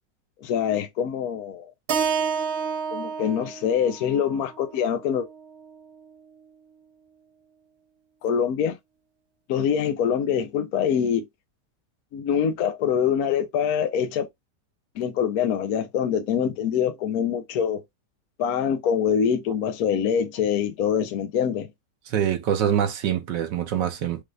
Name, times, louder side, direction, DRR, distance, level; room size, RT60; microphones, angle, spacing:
voice 1, 0.4-1.7 2.9-5.3 8.2-8.8 9.5-11.3 12.1-14.3 15.0-17.8 18.4-21.7, left 8 dB, 65° left, 1.0 m, -24 dB
Keyboard (musical), 1.9-6.1, right 6 dB, 55° right, 0.7 m, -30 dB
voice 2, 22.1-24.2, right 9 dB, 85° right, 1.5 m, -24 dB
5.1 x 2.4 x 3.2 m
omnidirectional pair, 1.9 m